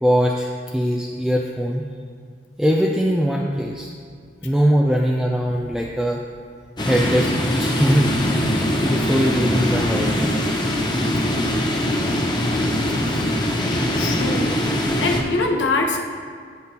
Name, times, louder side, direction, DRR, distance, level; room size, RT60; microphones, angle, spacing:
voice 1, 0.0-1.9 2.6-3.9 4.4-6.2 6.8-7.3 7.6-8.1 8.5-10.4 13.6-14.1, equal, ahead, -2 dB, 0.5 m, -21 dB
sound 1, 6.8-15.2, left 1 dB, 25° left, 0.9 m, -22 dB
voice 2, 13.9-16.0, left 3 dB, 90° left, 1 dB, 1.1 m, -24 dB
12.5 x 7.7 x 3.0 m, 2.1 s
head